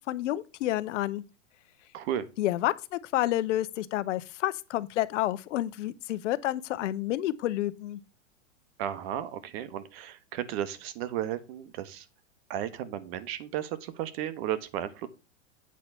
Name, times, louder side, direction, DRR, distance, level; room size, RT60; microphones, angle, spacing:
voice 1, 0.1-1.2 2.4-8.0, left 14 dB, 65° left, 0.8 m, -29 dB
voice 2, 1.9-2.3 8.8-12.1 12.5-15.1, right 11 dB, 50° right, 1.2 m, -34 dB
8.6 x 4.2 x 5.6 m
hypercardioid pair, 135°, 39 cm